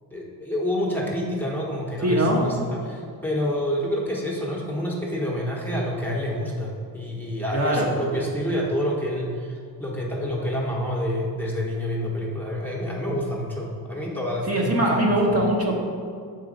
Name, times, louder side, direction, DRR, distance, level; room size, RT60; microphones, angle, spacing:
voice 1, 0.1-15.1, equal, 5° left, -4 dB, 1.0 m, -28 dB
voice 2, 2.0-2.4 7.5-7.9 14.5-15.8, right 1 dB, 35° right, -2 dB, 1.0 m, -21 dB
6.6 x 4.1 x 5.2 m, 2.2 s
cardioid pair, 125°, 42 cm